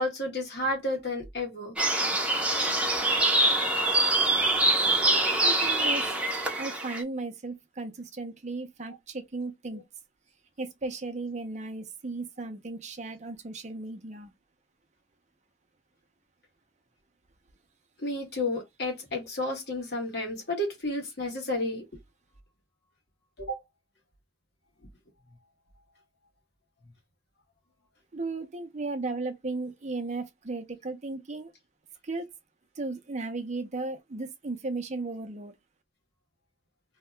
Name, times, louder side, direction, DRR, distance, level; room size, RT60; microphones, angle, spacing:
voice 1, 0.0-1.8 18.0-21.8 23.4-23.6, left 1 dB, 60° left, 1.4 m, -31 dB
sound 1, 1.8-7.0, right 2 dB, 5° right, 0.7 m, -24 dB
voice 2, 5.4-6.2 6.6-9.8 10.6-14.3 28.1-31.5 32.0-32.3 32.8-35.5, right 3 dB, 40° right, 0.6 m, -35 dB
2.8 x 2.3 x 3.2 m
head